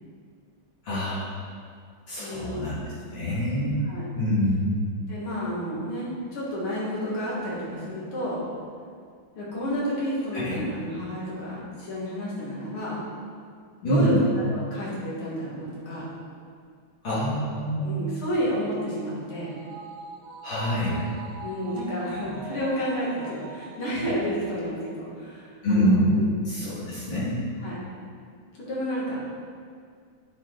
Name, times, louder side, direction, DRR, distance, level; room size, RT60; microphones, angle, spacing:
voice 1, 0.8-1.2 2.1-2.7 3.1-3.8 4.1-4.7 10.3-10.6 13.8-14.1 17.0-18.0 20.4-20.9 25.6-26.2 26.4-27.4, equal, 65° left, -11 dB, 2.8 m, -25 dB
voice 2, 2.2-2.9 3.8-4.0 5.1-8.4 9.4-13.0 13.8-16.1 17.8-19.5 21.4-26.3 27.6-27.8 28.6-29.2, equal, 80° left, -6 dB, 2.6 m, -30 dB
sound 1, 18.5-25.1 25.5-25.6, right 3 dB, 75° right, 1.4 m, -43 dB
9.6 x 4.5 x 3.8 m, 2.1 s
omnidirectional pair, 2.3 m